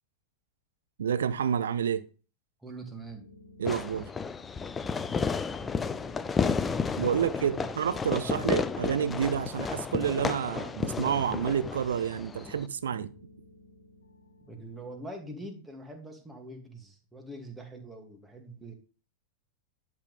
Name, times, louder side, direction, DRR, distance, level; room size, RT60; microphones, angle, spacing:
voice 1, 1.0-2.0 3.6-4.1 7.0-13.1, right 8 dB, 65° right, 0.7 m, -29 dB
voice 2, 2.6-3.3 4.9-5.5 7.1-7.8 8.1-8.5 14.4-18.7, right 2 dB, 10° right, 2.4 m, -44 dB
sound 1, 3.0-15.1, left 2 dB, 80° left, 1.3 m, -55 dB
Fireworks, 3.6-12.7, left 5 dB, 15° left, 0.5 m, -32 dB
11.5 x 6.0 x 3.4 m
figure-of-eight pair, 90°, 0 cm